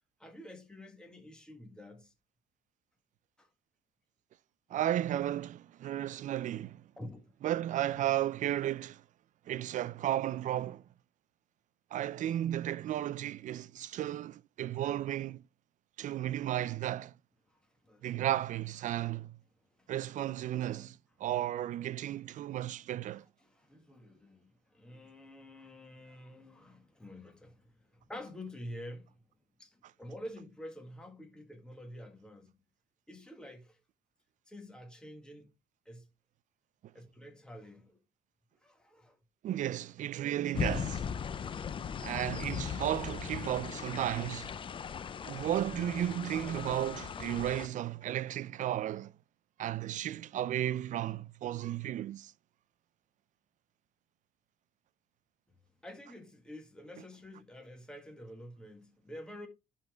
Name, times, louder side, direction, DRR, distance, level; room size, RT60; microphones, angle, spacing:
voice 1, 0.2-2.1 3.4-3.5 7.0-7.2 17.5-18.3 19.0-19.1 19.8-19.9 23.4-29.2 29.6-32.5 33.1-33.8 34.5-35.5 35.8-36.1 36.9-38.0 38.6-39.2 55.8-59.5, left 1 dB, 5° left, 1.5 m, -48 dB
voice 2, 4.7-6.9 7.4-9.0 9.5-10.8 11.9-15.4 16.0-17.1 18.0-19.4 19.9-23.2 39.4-41.2 42.0-44.5 45.2-49.1 49.6-52.3, right 12 dB, 50° right, 0.4 m, -34 dB
sound 1, 40.5-47.7, left 7 dB, 30° left, 0.5 m, -38 dB
10.5 x 3.8 x 3.4 m
cardioid pair, 110°, 17 cm